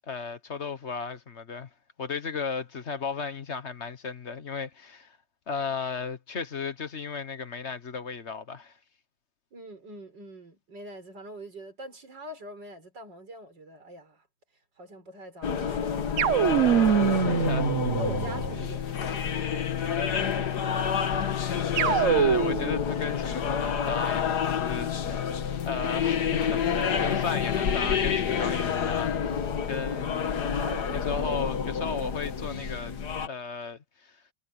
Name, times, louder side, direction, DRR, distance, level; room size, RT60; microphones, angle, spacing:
voice 1, 0.1-1.7 2.0-5.2 5.5-8.7 17.1-17.7 21.8-25.4 25.6-30.5 30.9-32.9 33.2-34.1, left 5 dB, 40° left, 1.4 m, -35 dB
voice 2, 9.5-14.2 14.8-17.7 18.0-20.7 30.4-30.9, right 1 dB, 80° right, 5.9 m, -43 dB
sound 1, 15.4-33.3, left 7 dB, 65° left, 2.0 m, -28 dB
sound 2, 16.2-18.7 21.8-22.8, right 9 dB, 55° right, 1.0 m, -24 dB
omnidirectional pair, 1.9 m